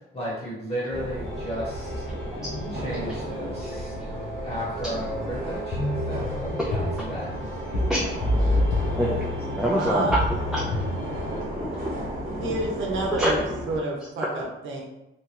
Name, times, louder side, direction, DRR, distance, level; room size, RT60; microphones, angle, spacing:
voice 1, 0.1-2.0 2.7-3.9 4.4-7.3, equal, 30° left, -5 dB, 1.5 m, -34 dB
sound 1, 0.9-13.8, right 1 dB, 50° right, 1.0 m, -34 dB
sound 2, 1.2-11.5, left 1 dB, 70° left, 0.7 m, -30 dB
voice 2, 3.1-3.8 4.9-5.3 6.7-6.8 7.9-8.2 8.7-10.2 10.5-10.7 11.1-12.5 13.2-13.3, equal, ahead, -5 dB, 0.5 m, -28 dB
voice 3, 9.8-10.1 12.4-13.4 13.7-14.8, right 2 dB, 80° right, -1 dB, 0.7 m, -29 dB
2.9 x 2.2 x 2.9 m, 0.90 s
cardioid pair, 90°, 20 cm